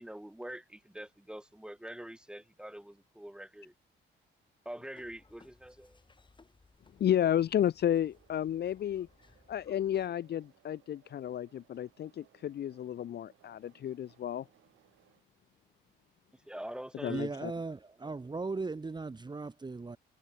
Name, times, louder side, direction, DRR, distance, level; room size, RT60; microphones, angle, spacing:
voice 1, 0.0-3.7 4.6-6.0 16.3-17.3, right 1 dB, 5° right, 3.2 m, -45 dB
sound 1, 5.0-10.1, left 3 dB, 25° left, 5.6 m, -63 dB
voice 2, 7.0-9.1 9.5-14.4 17.0-17.5, left 10 dB, 55° left, 0.7 m, -32 dB
sound 2, 8.0-15.2, right 14 dB, 85° right, 6.2 m, -67 dB
voice 3, 17.1-20.0, right 3 dB, 20° right, 1.4 m, -37 dB
cardioid pair, 90°, 20 cm